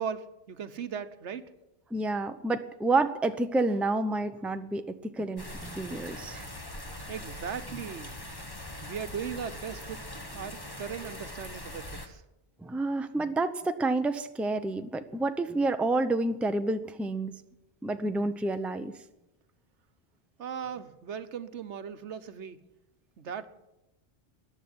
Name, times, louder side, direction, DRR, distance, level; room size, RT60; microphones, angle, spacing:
voice 1, 0.0-1.5 7.1-8.2 8.8-10.0 10.3-12.2 20.4-22.6 23.2-23.5, right 7 dB, 80° right, 10 dB, 1.3 m, -38 dB
voice 2, 1.9-6.5 12.6-17.3 17.8-18.9, right 2 dB, ahead, 8 dB, 0.6 m, -29 dB
sound 1, 5.4-12.1, left 1 dB, 20° left, 1.3 m, -42 dB
14.5 x 10.0 x 9.6 m, 0.93 s
omnidirectional pair, 1.2 m